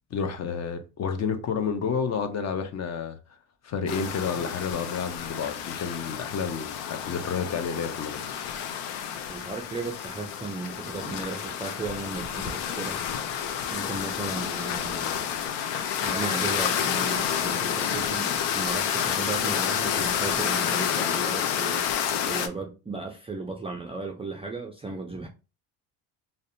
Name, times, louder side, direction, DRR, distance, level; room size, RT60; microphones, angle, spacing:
voice 1, 0.1-3.2 3.6-8.4, left 6 dB, 40° left, 0.5 m, -30 dB
sound 1, 3.9-22.5, left 8 dB, 85° left, 0.5 m, -29 dB
voice 2, 9.3-13.0 13.7-15.4 16.0-25.3, right 3 dB, 15° right, 0.3 m, -35 dB
2.6 x 2.1 x 2.5 m
supercardioid pair, 85°, 42 cm